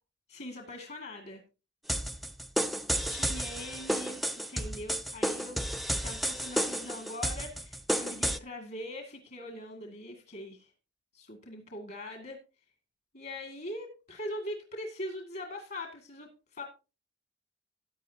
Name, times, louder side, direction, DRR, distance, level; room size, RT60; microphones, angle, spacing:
voice 1, 0.3-1.4 3.1-5.6 6.0-10.7 11.1-12.4 13.1-16.6, left 1 dB, 50° left, 3 dB, 2.1 m, -42 dB
sound 1, 1.9-8.4, right 1 dB, ahead, 0.5 m, -32 dB
15.0 x 9.8 x 2.8 m, 0.31 s
head